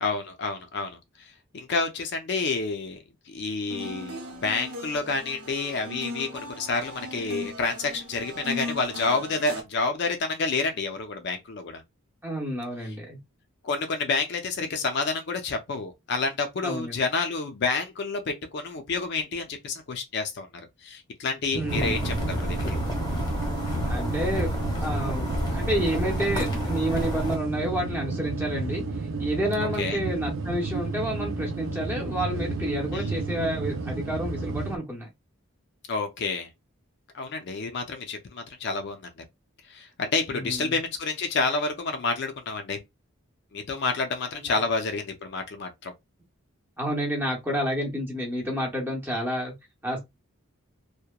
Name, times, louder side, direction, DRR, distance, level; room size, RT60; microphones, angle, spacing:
voice 1, 0.0-1.0 1.5-3.0 3.3-11.8 13.6-20.5 20.8-22.8 29.6-30.0 32.9-33.0 35.9-36.5 37.1-39.1 39.7-42.8 43.5-45.9, left 4 dB, 50° left, 0.4 m, -29 dB
sound 1, 3.7-9.6, left 1 dB, 85° right, 1.0 m, -38 dB
voice 2, 12.2-13.2 16.6-17.0 21.5-22.0 23.9-24.5 24.8-35.1 40.3-40.8 44.3-44.6 46.8-49.5 49.8-50.0, equal, 10° right, 0.7 m, -30 dB
sound 2, 21.5-34.8, right 3 dB, 65° right, 0.4 m, -31 dB
sound 3, 21.7-27.4, left 1 dB, 20° left, 0.8 m, -30 dB
2.8 x 2.1 x 2.2 m
head